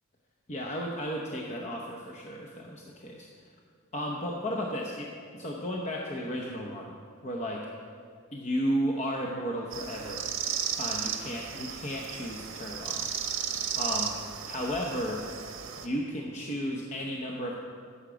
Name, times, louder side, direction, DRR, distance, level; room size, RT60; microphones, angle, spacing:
voice 1, 0.5-3.5 3.9-6.9 7.2-7.7 8.3-10.3 10.8-13.1 13.7-14.1 14.4-15.2 15.8-17.6, equal, 35° left, -1 dB, 0.8 m, -34 dB
sound 1, 9.7-15.9, right 8 dB, 70° right, 1.0 m, -34 dB
15.0 x 7.3 x 5.1 m, 2.1 s
head